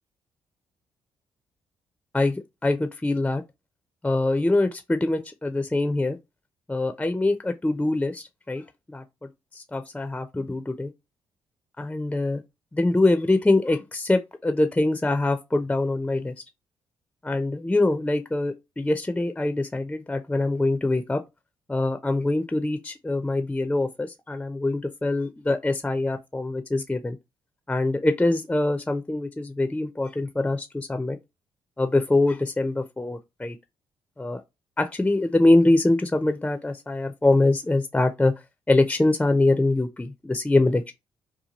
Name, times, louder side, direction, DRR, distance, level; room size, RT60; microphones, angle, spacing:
voice 1, 2.1-3.4 4.0-6.2 6.7-10.9 11.8-12.4 12.7-16.3 17.2-21.2 21.7-27.2 27.7-31.2 31.8-33.6 34.2-34.4 34.8-38.4 38.7-40.9, left 2 dB, 10° left, 0.4 m, -24 dB
2.8 x 2.2 x 2.8 m
supercardioid pair, 50°, 10 cm